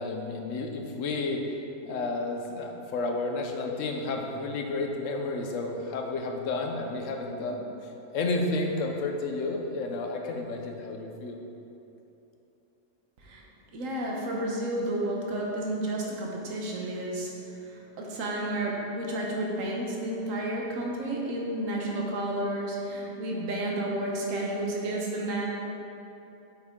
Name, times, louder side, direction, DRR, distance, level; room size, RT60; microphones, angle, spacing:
voice 1, 0.0-1.6 1.8-11.4, left 3 dB, 70° left, 3 dB, 1.1 m, -31 dB
voice 2, 13.7-25.4, right 1 dB, 70° right, -2 dB, 1.4 m, -31 dB
8.3 x 6.2 x 3.7 m, 2.9 s
omnidirectional pair, 1.4 m